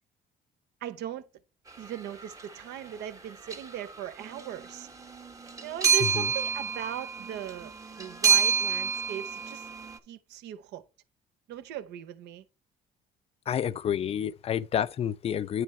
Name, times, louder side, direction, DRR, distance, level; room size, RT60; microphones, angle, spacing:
voice 1, 0.8-1.3 1.8-4.9 5.6-9.7 10.1-10.8 11.5-12.4, right 10 dB, 80° right, 0.7 m, -39 dB
sound 1, 2.2-2.4 3.5-3.9 4.2-10.0, right 6 dB, 20° right, 0.7 m, -28 dB
voice 2, 13.5-15.6, left 9 dB, 35° left, 0.4 m, -29 dB
9.1 x 3.3 x 4.6 m
cardioid pair, 110°, 17 cm